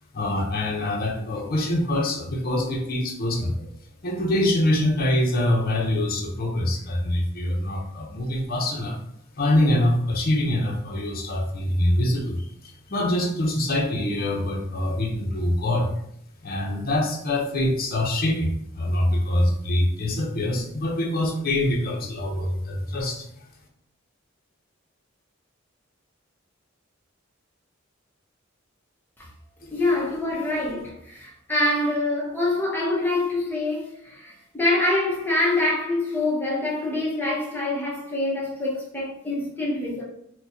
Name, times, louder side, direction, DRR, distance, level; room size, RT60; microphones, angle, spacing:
voice 1, 0.1-3.7 4.0-9.0 9.4-15.9 16.4-23.3 29.6-29.8, left 1 dB, 45° left, 0.7 m, -24 dB
voice 2, 29.7-40.0, left 2 dB, 10° left, 0.8 m, -25 dB
4.4 x 2.1 x 2.7 m
head